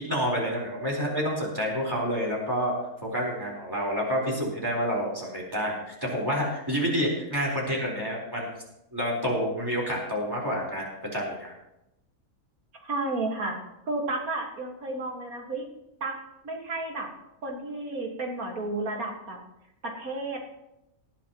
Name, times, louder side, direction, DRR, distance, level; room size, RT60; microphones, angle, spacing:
voice 1, 0.1-2.7 3.0-8.5 8.9-11.5, equal, 15° right, -2 dB, 4.4 m, -28 dB
voice 2, 12.8-13.6 13.9-15.7 16.0-16.2 16.4-17.1 17.4-19.4 19.8-20.5, right 2 dB, 80° right, 1 dB, 2.4 m, -32 dB
19.0 x 11.0 x 3.1 m, 0.86 s
omnidirectional pair, 1.5 m